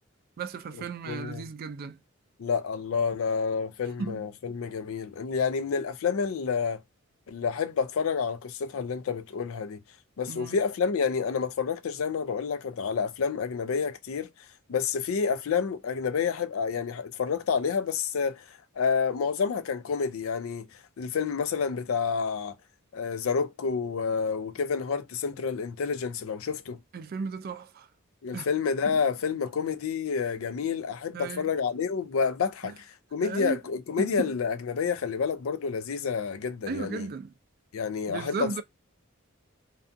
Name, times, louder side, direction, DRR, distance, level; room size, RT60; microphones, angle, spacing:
voice 1, 0.4-2.0 4.0-4.2 10.3-10.6 26.9-27.9 28.3-28.5 31.1-31.5 33.2-33.6 34.0-34.3 36.7-37.3 38.1-38.6, right 5 dB, 45° right, 0.3 m, -35 dB
voice 2, 1.1-1.5 2.4-6.8 7.3-9.8 10.2-14.3 14.7-22.5 22.9-26.8 28.2-32.8 33.1-37.1 37.7-38.6, left 6 dB, 70° left, 0.4 m, -29 dB
2.4 x 2.3 x 2.5 m
head